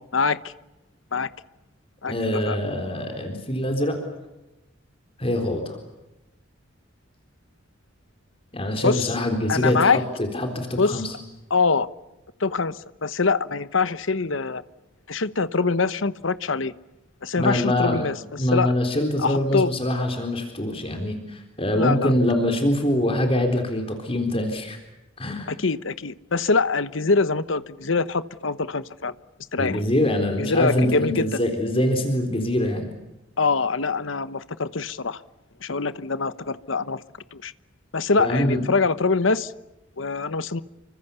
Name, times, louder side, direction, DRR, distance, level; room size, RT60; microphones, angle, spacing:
voice 1, 0.1-0.5 1.1-1.3 2.0-2.1 2.5-2.6 8.8-9.1 9.5-10.0 10.8-11.0 11.5-11.9 12.4-14.6 15.1-16.7 17.2-18.2 18.5-18.7 19.2-19.7 21.7-22.1 25.5-29.1 29.5-29.8 30.4-31.4 33.4-35.2 35.6-37.0 37.3-37.5 37.9-39.5 40.0-40.6, left 4 dB, 80° left, 15 dB, 1.1 m, -24 dB
voice 2, 2.0-4.0 5.2-5.8 8.5-11.1 17.4-18.1 18.4-24.8 25.2-25.5 29.6-32.9 38.2-38.6, left 1 dB, 30° left, 4 dB, 3.9 m, -24 dB
29.5 x 25.0 x 7.1 m, 1.0 s
head